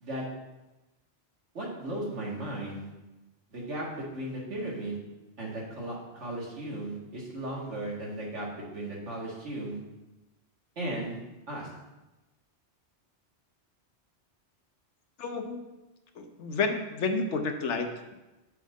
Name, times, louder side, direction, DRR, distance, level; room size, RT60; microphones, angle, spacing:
voice 1, 1.5-2.9 3.5-5.0 5.4-9.8 10.8-11.2 11.5-11.7, right 1 dB, 85° right, -4 dB, 2.1 m, -36 dB
voice 2, 15.2-15.7 16.2-18.1, left 4 dB, 85° left, 5 dB, 1.1 m, -30 dB
7.3 x 6.1 x 3.6 m, 1.0 s
omnidirectional pair, 1.2 m